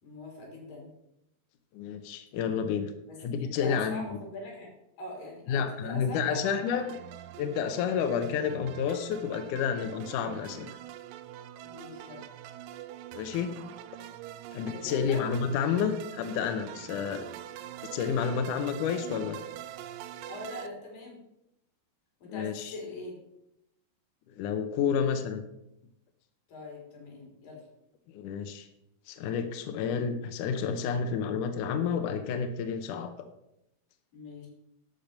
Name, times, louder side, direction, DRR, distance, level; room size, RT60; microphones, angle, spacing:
voice 1, 0.0-1.0 3.1-6.6 6.9-7.0 11.6-12.2 14.6-15.3 20.3-21.2 22.2-23.2 26.5-27.7 34.1-34.5, left 1 dB, 60° left, -1 dB, 5.2 m, -42 dB
voice 2, 1.7-2.9 3.2-4.1 5.5-6.9 7.4-10.8 13.1-13.5 14.5-17.3 17.9-19.4 22.3-22.7 24.3-25.4 28.1-28.7 29.1-33.1, left 7 dB, 75° left, 7 dB, 1.9 m, -30 dB
sound 1, 6.4-20.7, right 12 dB, 90° right, 1.9 m, -44 dB
12.0 x 5.9 x 6.6 m, 0.83 s
omnidirectional pair, 4.5 m